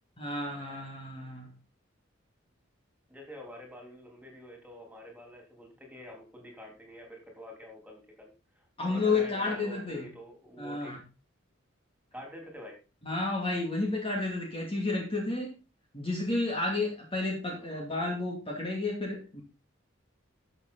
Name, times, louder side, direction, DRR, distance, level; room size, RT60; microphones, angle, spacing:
voice 1, 0.2-1.5 8.8-10.1 10.6-11.0 13.0-15.6 15.9-19.4, left 3 dB, 25° left, -1 dB, 2.5 m, -31 dB
voice 2, 3.1-10.9 12.1-12.8 17.5-17.7, left 1 dB, 5° right, 1 dB, 3.7 m, -48 dB
12.5 x 7.1 x 4.0 m, 0.31 s
head